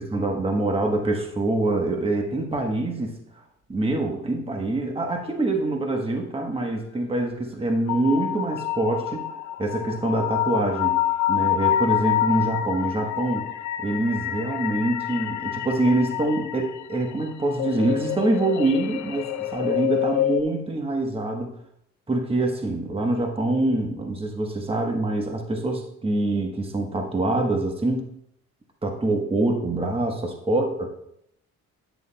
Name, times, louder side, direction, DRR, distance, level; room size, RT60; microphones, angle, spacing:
voice 1, 0.0-3.1 3.7-9.3 9.6-11.0 11.3-13.5 13.8-21.5 22.1-28.1 28.8-30.9, right 2 dB, 20° right, 2 dB, 1.2 m, -25 dB
sound 1, 7.9-20.4, left 12 dB, 70° left, 0.6 m, -27 dB
10.5 x 9.2 x 2.3 m, 0.75 s
cardioid pair, 90°, 30 cm